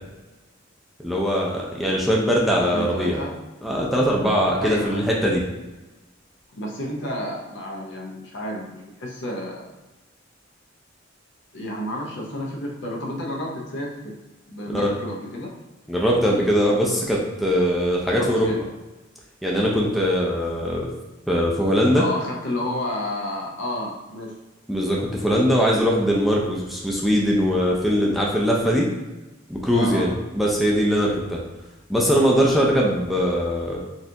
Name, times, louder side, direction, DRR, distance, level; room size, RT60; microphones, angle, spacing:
voice 1, 1.0-3.2 3.6-5.4 14.7-14.9 15.9-18.5 19.4-20.9 21.3-22.0 24.7-28.9 29.5-31.4 31.9-33.8, equal, ahead, -4 dB, 0.4 m, -21 dB
voice 2, 2.7-3.3 4.6-5.1 6.5-9.7 11.5-14.2 14.5-15.5 18.2-18.6 21.9-24.3 29.7-30.1, left 1 dB, 65° left, -1 dB, 0.8 m, -31 dB
4.1 x 2.5 x 2.8 m, 1.1 s
head